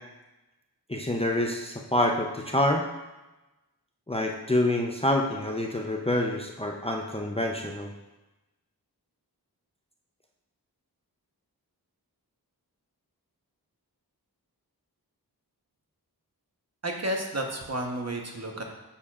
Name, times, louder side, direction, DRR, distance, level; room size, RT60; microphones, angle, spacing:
voice 1, 0.9-2.9 4.1-7.9, left 1 dB, 15° left, 1 dB, 0.6 m, -27 dB
voice 2, 16.8-18.6, right 1 dB, 40° right, 1 dB, 1.2 m, -31 dB
8.7 x 7.2 x 2.5 m, 1.0 s
wide cardioid pair, 60°, 38 cm